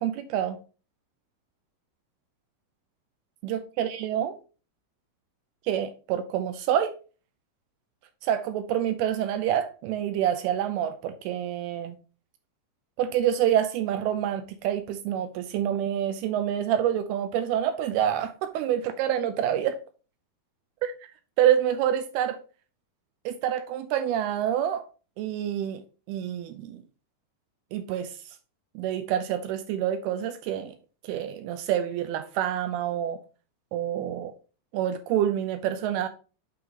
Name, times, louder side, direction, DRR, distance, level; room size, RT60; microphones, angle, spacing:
voice 1, 0.0-0.6 3.4-4.3 5.7-6.9 8.2-12.0 13.0-19.8 20.8-20.9 21.4-22.4 23.3-24.8 25.2-25.8 26.1-26.8 27.7-28.1 28.8-30.8 31.1-33.2 33.7-34.3 34.7-36.1, right 10 dB, 85° right, 2.5 m, -27 dB
11.0 x 3.9 x 2.8 m
omnidirectional pair, 4.5 m